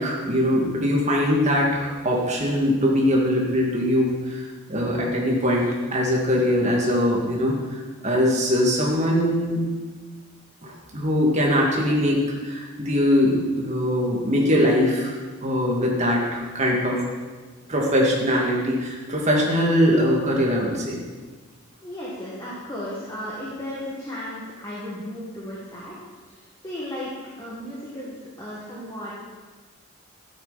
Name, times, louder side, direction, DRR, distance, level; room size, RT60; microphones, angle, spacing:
voice 1, 0.0-4.4 4.7-9.6 10.6-15.1 15.4-17.0 17.7-21.0, equal, 35° right, -2 dB, 2.2 m, -22 dB
voice 2, 21.8-26.0 26.6-27.1 27.4-29.1, left 1 dB, 15° left, -7 dB, 1.9 m, -34 dB
13.0 x 8.8 x 4.2 m, 1.4 s
head